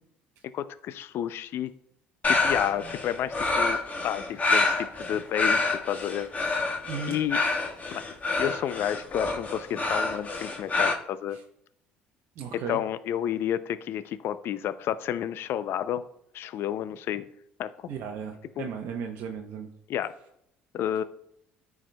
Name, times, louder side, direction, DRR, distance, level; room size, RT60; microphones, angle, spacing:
voice 1, 0.5-1.7 2.3-6.3 7.1-7.4 7.9-8.0 8.4-11.4 12.5-16.0 16.3-17.3 17.6-17.7 18.6-18.7 19.9-20.1 20.7-21.0, left 10 dB, 60° left, 14 dB, 0.4 m, -30 dB
Panting Male, 2.2-10.9, left 3 dB, 30° left, 1.5 m, -27 dB
voice 2, 6.9-7.2 11.3-11.4 12.4-12.8 17.9-19.7, right 6 dB, 60° right, 3 dB, 0.8 m, -35 dB
14.0 x 4.7 x 2.2 m, 0.76 s
hypercardioid pair, 65°, 5 cm